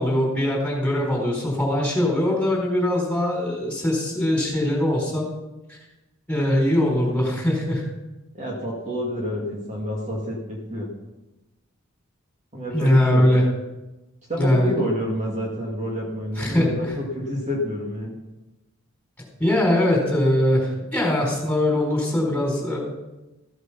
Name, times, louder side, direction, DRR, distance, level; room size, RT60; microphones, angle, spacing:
voice 1, 0.0-5.3 5.7-5.8 6.3-7.8 12.7-13.4 14.4-14.7 16.4-16.9 19.4-22.8, left 1 dB, 5° left, -2 dB, 4.2 m, -21 dB
voice 2, 8.3-10.9 12.5-13.2 14.3-18.1, equal, 35° right, -3 dB, 2.2 m, -28 dB
14.5 x 8.1 x 5.7 m, 1.0 s
head